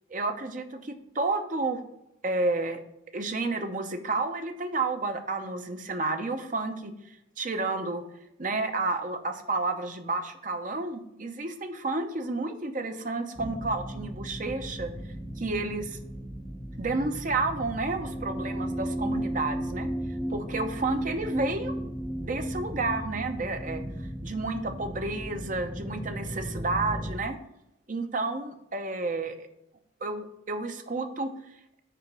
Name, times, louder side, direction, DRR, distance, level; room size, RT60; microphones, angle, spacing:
voice 1, 0.1-1.8 2.2-2.8 3.1-6.9 7.4-8.0 8.4-14.9 15.4-16.0 16.8-19.9 20.3-21.9 22.2-23.8 24.2-27.4 27.9-29.5 30.0-31.3, right 3 dB, 40° right, 6 dB, 0.7 m, -31 dB
sound 1, 13.4-27.1, equal, 10° right, 0.7 m, -35 dB
6.8 x 4.3 x 6.1 m, 0.82 s
head